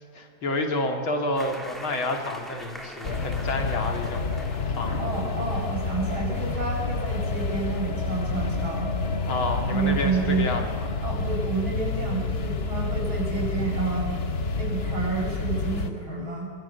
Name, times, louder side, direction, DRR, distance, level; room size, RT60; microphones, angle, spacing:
voice 1, 0.1-4.4 4.7-5.0 9.2-10.9, left 2 dB, 70° left, 4 dB, 3.4 m, -29 dB
sound 1, 1.3-10.6, equal, ahead, 3.1 m, -45 dB
sound 2, 3.0-15.9, left 3 dB, 35° left, 1.1 m, -29 dB
voice 2, 5.0-8.9 9.7-10.6 11.0-14.1 14.5-16.5, right 4 dB, 70° right, -1 dB, 7.4 m, -30 dB
26.5 x 22.0 x 7.1 m, 2.1 s
omnidirectional pair, 2.3 m